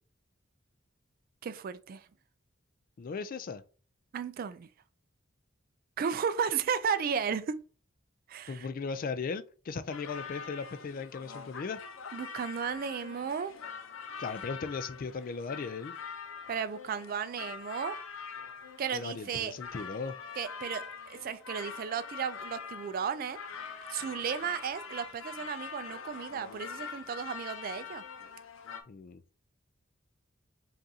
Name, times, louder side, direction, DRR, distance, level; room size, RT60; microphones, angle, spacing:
voice 1, 1.4-2.0 4.1-4.7 6.0-7.6 8.3-8.7 12.1-13.5 16.5-18.0 18.8-19.5 20.4-20.8 21.1-23.4 23.9-28.0, right 7 dB, 45° right, 0.3 m, -34 dB
voice 2, 3.0-3.6 8.5-11.8 14.2-15.9 18.9-20.2 28.9-29.2, left 4 dB, 45° left, 0.3 m, -37 dB
sound 1, 9.9-28.8, left 6 dB, 80° left, 0.6 m, -44 dB
5.3 x 2.5 x 2.7 m
head